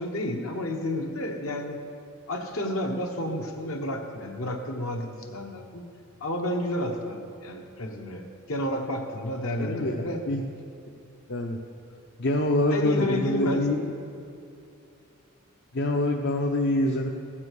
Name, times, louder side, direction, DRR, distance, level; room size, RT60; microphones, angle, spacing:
voice 1, 0.0-1.8 2.3-5.8 6.2-10.2 12.7-13.7, left 1 dB, 70° left, 3 dB, 1.2 m, -31 dB
voice 2, 9.6-9.9 10.3-10.4 11.3-11.6 12.2-13.9 15.7-17.1, left 1 dB, 55° left, 1 dB, 0.6 m, -25 dB
14.5 x 7.4 x 4.8 m, 2.7 s
head